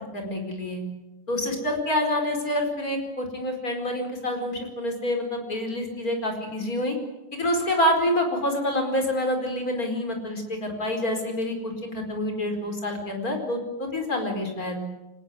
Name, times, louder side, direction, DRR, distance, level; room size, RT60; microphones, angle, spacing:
voice 1, 0.1-0.8 1.3-7.0 7.3-14.8, left 1 dB, 25° left, 4 dB, 5.0 m, -27 dB
25.0 x 20.0 x 9.8 m, 1.0 s
omnidirectional pair, 3.4 m